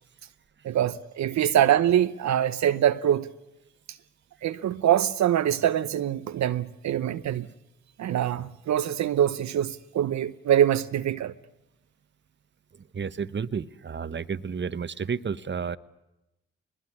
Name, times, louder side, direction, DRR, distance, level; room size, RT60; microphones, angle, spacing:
voice 1, 0.6-3.3 4.4-7.5 8.0-11.3, right 11 dB, 70° right, 0.9 m, -24 dB
voice 2, 12.9-15.8, right 6 dB, 40° right, 1.1 m, -31 dB
21.5 x 20.5 x 9.7 m
supercardioid pair, 45°, 29 cm